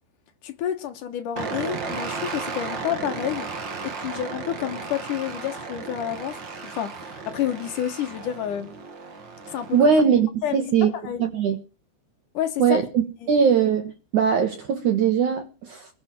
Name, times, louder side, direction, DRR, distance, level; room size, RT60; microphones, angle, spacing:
voice 1, 0.4-3.5 3.8-8.7 9.5-9.8 10.4-11.2 12.3-12.8 13.2-13.3, left 10 dB, 65° left, 2.1 m, -29 dB
sound 1, 1.4-10.0, right 4 dB, 85° right, 1.0 m, -34 dB
voice 2, 9.7-10.9 11.2-11.6 12.6-12.8 13.3-15.9, right 6 dB, 60° right, 2.2 m, -20 dB
22.0 x 10.5 x 6.2 m
omnidirectional pair, 5.2 m